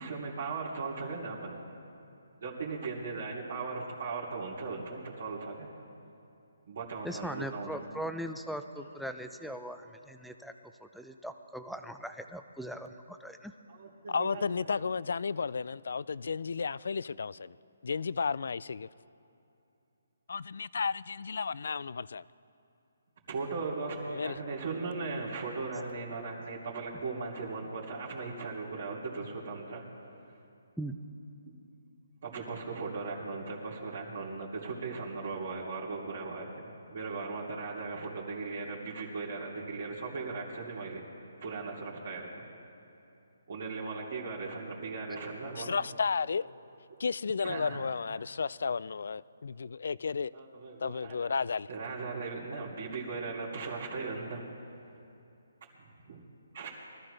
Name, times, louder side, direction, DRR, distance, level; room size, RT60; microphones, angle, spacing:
voice 1, 0.0-1.6 2.4-5.7 6.7-7.8 13.7-14.4 23.3-29.8 32.2-41.1 41.4-42.4 43.5-45.8 46.9-47.0 47.4-47.8 50.3-51.3 51.7-54.5 56.0-56.2 56.5-56.7, right 4 dB, 55° right, 2.9 m, -38 dB
voice 2, 7.0-10.5 10.8-13.5 30.8-31.0, right 1 dB, ahead, 0.5 m, -40 dB
voice 3, 14.1-17.6 17.8-18.9 20.3-22.2 24.1-24.3 45.6-46.5 47.0-50.3 50.8-51.7, left 5 dB, 70° left, 0.3 m, -33 dB
23.5 x 14.0 x 3.3 m
hypercardioid pair, 160°, 0 cm